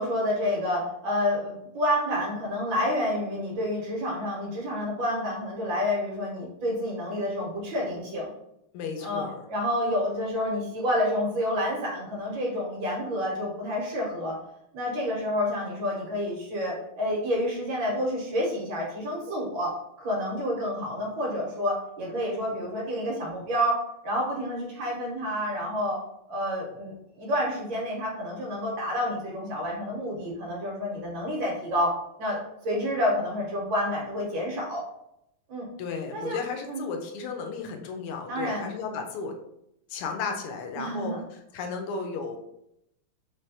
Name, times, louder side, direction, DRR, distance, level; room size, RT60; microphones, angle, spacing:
voice 1, 0.0-8.3 9.0-14.4 14.7-26.0 26.3-31.9 32.2-34.8 35.5-35.7 36.1-36.4 36.7-36.8 38.3-38.7 40.8-41.2, equal, 65° right, -2 dB, 1.7 m, -29 dB
voice 2, 8.7-9.4 35.8-39.3 39.9-42.4, left 5 dB, 85° left, 4 dB, 1.6 m, -34 dB
4.0 x 3.3 x 2.7 m, 0.79 s
omnidirectional pair, 2.4 m